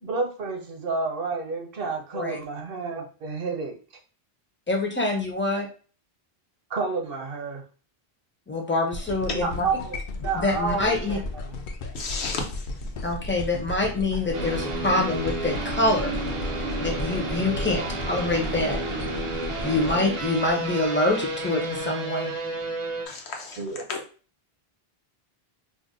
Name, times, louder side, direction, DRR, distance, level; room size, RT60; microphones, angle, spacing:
voice 1, 0.0-3.8 6.7-7.6 9.2-10.0 10.2-11.5 17.7-17.9 23.6-23.8, right 4 dB, 65° right, 3 dB, 0.9 m, -30 dB
voice 2, 4.7-5.7 8.5-9.6 10.3-11.2 13.0-16.1 16.8-17.8 18.1-18.8 19.6-22.3, left 2 dB, 15° left, 1 dB, 0.4 m, -25 dB
sound 1, 8.9-21.1 21.7-21.8, left 2 dB, 60° left, 0.6 m, -35 dB
voice 3, 11.9-12.7 23.1-24.0, left 4 dB, 85° left, 2 dB, 1.0 m, -33 dB
sound 2, 14.3-23.1, right 2 dB, 40° right, 0.5 m, -31 dB
2.6 x 2.1 x 3.8 m, 0.38 s
omnidirectional pair, 1.1 m